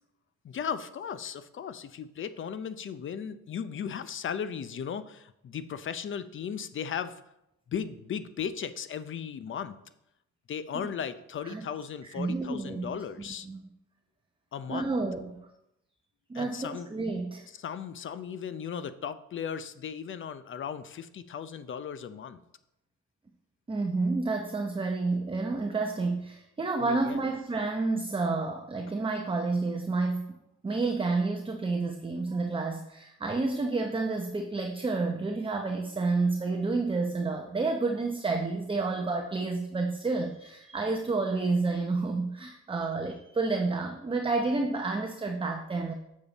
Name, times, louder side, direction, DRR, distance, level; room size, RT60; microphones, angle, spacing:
voice 1, 0.4-7.2 7.7-9.8 10.5-13.5 14.5-14.9 16.3-16.9 17.5-22.4 26.8-27.3, left 7 dB, 40° left, 13 dB, 0.6 m, -36 dB
voice 2, 12.2-13.6 14.7-15.4 16.3-17.4 23.7-30.4 30.6-45.9, right 3 dB, 15° right, 3 dB, 0.7 m, -30 dB
7.3 x 6.8 x 4.0 m, 0.83 s
cardioid pair, 90°, 30 cm